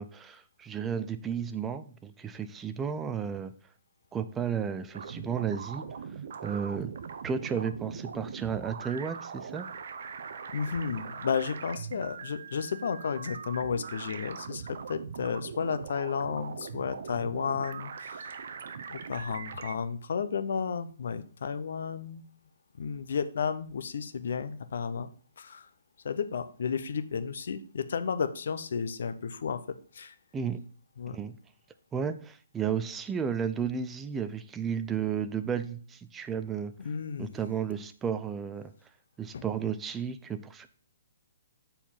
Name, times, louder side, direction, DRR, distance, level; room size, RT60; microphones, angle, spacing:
voice 1, 0.0-3.5 4.1-5.8 6.4-6.9 7.2-9.7 30.3-30.6 31.1-31.3 31.9-36.7 37.2-38.7 39.2-40.7, right 7 dB, 10° right, 10 dB, 0.3 m, -33 dB
sound 1, 4.9-19.8, right 6 dB, 50° right, 0.7 m, -41 dB
voice 2, 10.5-18.3 18.9-22.2 22.7-25.7 26.0-30.2 31.0-31.2 36.8-37.3 39.3-39.5, left 6 dB, 55° left, 11 dB, 0.7 m, -33 dB
7.0 x 4.6 x 5.6 m, 0.43 s
hypercardioid pair, 175°, 0 cm